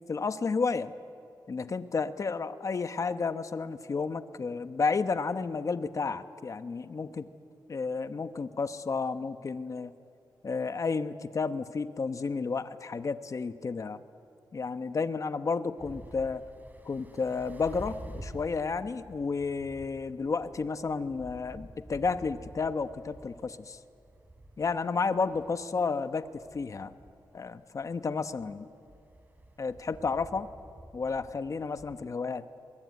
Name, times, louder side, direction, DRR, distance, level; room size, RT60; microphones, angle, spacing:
voice 1, 0.1-0.9 1.5-7.3 7.7-9.9 10.4-14.0 14.5-16.4 16.9-23.8 24.6-26.9 27.3-28.7 29.6-30.5 30.9-32.5, left 4 dB, 45° left, 11 dB, 1.1 m, -32 dB
sound 1, 15.8-32.1, right 1 dB, 20° right, 3.6 m, -50 dB
23.5 x 21.5 x 9.6 m, 2.5 s
wide cardioid pair, 100°, 8 cm